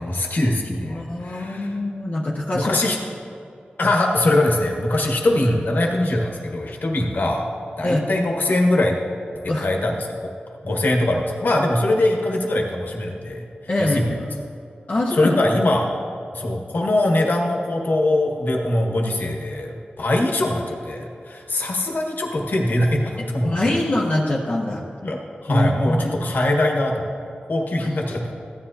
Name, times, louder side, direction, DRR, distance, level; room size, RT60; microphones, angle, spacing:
voice 1, 0.0-1.8 2.5-3.0 3.8-7.5 7.8-9.0 9.4-10.3 10.6-13.4 13.8-14.3 15.1-15.9 16.3-23.8 25.0-27.0 27.5-28.3, left 1 dB, 70° left, 0 dB, 1.5 m, -22 dB
voice 2, 0.9-2.7 7.8-8.1 9.5-9.6 13.7-14.2 14.9-15.4 23.4-24.8 25.5-26.1 27.8-27.9, left 1 dB, 45° left, -5 dB, 1.0 m, -23 dB
15.0 x 10.0 x 2.8 m, 2.5 s
wide cardioid pair, 95°, 3 cm